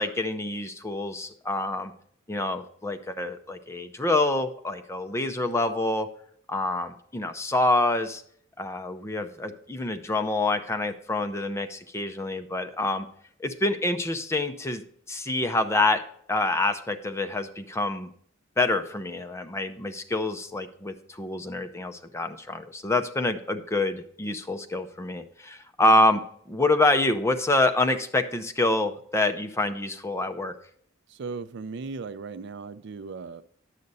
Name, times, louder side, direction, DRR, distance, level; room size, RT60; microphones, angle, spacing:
voice 1, 0.0-1.9 2.3-6.1 6.5-8.2 8.6-13.1 13.4-14.8 15.1-16.0 16.3-18.1 18.6-26.2 26.5-30.5, left 2 dB, 15° left, 7 dB, 0.6 m, -26 dB
voice 2, 31.1-33.4, right 4 dB, 60° right, 14 dB, 0.4 m, -37 dB
10.5 x 6.6 x 4.0 m, 0.62 s
head